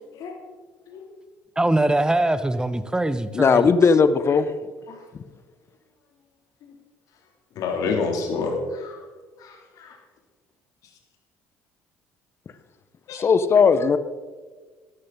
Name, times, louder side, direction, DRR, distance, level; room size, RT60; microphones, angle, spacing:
voice 1, 1.6-3.7, right 1 dB, 10° right, 13 dB, 1.0 m, -22 dB
voice 2, 3.3-4.5 13.2-14.0, left 5 dB, 40° left, 13 dB, 1.1 m, -17 dB
voice 3, 7.5-9.0 9.4-10.0 13.1-13.2, left 4 dB, 60° left, 2 dB, 2.9 m, -29 dB
13.5 x 13.0 x 3.9 m, 1.4 s
hypercardioid pair, 55°, 7 cm